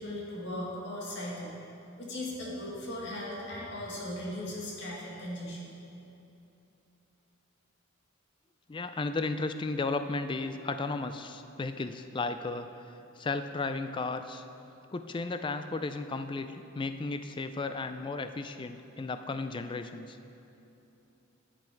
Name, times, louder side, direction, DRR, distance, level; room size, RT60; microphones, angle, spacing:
voice 1, 0.0-1.5 2.0-5.7, left 1 dB, 55° left, -4 dB, 1.9 m, -38 dB
voice 2, 8.7-12.7 13.2-14.4 14.9-20.2, left 3 dB, 25° left, 9 dB, 0.3 m, -34 dB
10.5 x 7.7 x 4.5 m, 2.9 s
head